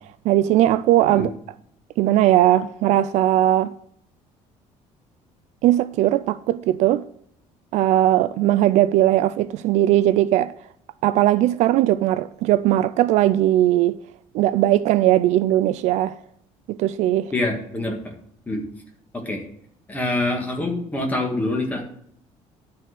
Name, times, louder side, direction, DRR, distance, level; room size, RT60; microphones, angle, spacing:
voice 1, 0.2-1.3 2.0-3.7 5.6-7.0 7.7-10.5 11.0-14.0 14.3-16.1 16.7-17.3, right 13 dB, 65° right, 0.4 m, -19 dB
voice 2, 17.3-18.0 18.5-18.6 19.2-19.4 19.9-21.8, left 2 dB, 10° left, 1.5 m, -25 dB
12.0 x 4.2 x 6.4 m
cardioid pair, 165°, 13 cm